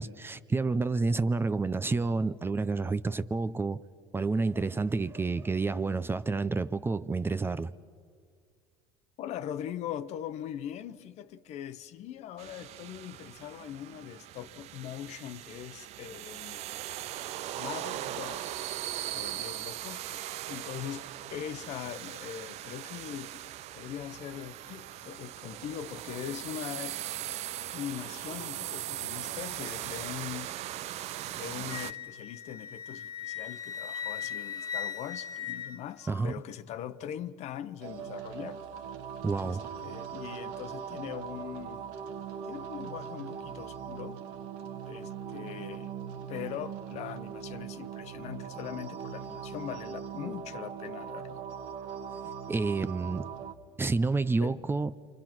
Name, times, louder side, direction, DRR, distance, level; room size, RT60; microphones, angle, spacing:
voice 1, 0.0-3.8 4.1-7.7 36.1-36.3 39.2-39.7 52.5-53.3 53.8-54.9, right 3 dB, 15° right, 0.6 m, -29 dB
voice 2, 9.2-16.6 17.5-18.5 19.1-27.0 27.7-30.5 31.3-38.6 39.3-41.9 42.4-44.2 44.9-45.9 46.3-51.4 54.4-54.6, left 10 dB, 60° left, 0.9 m, -41 dB
sound 1, 12.4-31.9, right 13 dB, 60° right, 0.5 m, -39 dB
Wind instrument woodwind instrument, 31.7-36.3, left 8 dB, 30° left, 1.5 m, -38 dB
sound 2, 37.8-53.5, right 7 dB, 80° right, 1.5 m, -40 dB
28.5 x 25.0 x 6.0 m
supercardioid pair, 95°, 13 cm